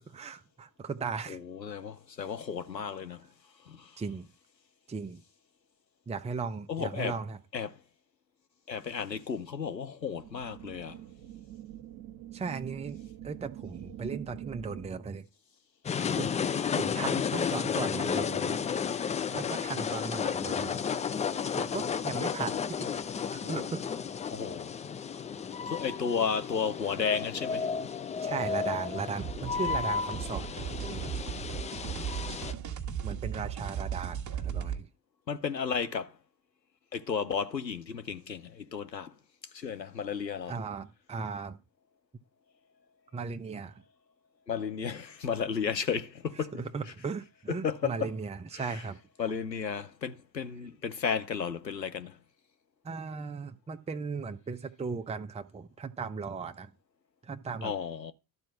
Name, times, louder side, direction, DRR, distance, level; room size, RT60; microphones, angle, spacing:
voice 1, 0.0-1.4 4.0-4.3 4.9-5.2 6.1-7.4 12.3-13.0 13.2-15.3 16.2-16.3 16.7-18.7 19.3-20.8 21.6-22.9 23.3-24.0 28.2-31.1 33.0-34.9 40.5-41.6 43.1-43.8 46.5-49.0 52.8-56.7 57.2-57.7, right 5 dB, 15° right, 0.8 m, -37 dB
voice 2, 1.3-3.3 3.6-4.0 6.7-7.1 7.5-7.8 8.7-11.0 24.3-24.8 25.7-27.9 35.3-36.2 36.9-39.2 39.5-40.6 44.5-46.5 47.5-48.1 48.5-48.8 49.2-52.2 57.6-58.1, left 6 dB, 90° left, 0.7 m, -33 dB
sound 1, 10.2-15.2, right 12 dB, 55° right, 1.4 m, -44 dB
sound 2, 15.8-32.5, left 6 dB, 15° left, 0.5 m, -33 dB
sound 3, 29.2-34.8, right 8 dB, 35° right, 1.6 m, -36 dB
12.0 x 4.4 x 7.2 m
figure-of-eight pair, 60°, 49 cm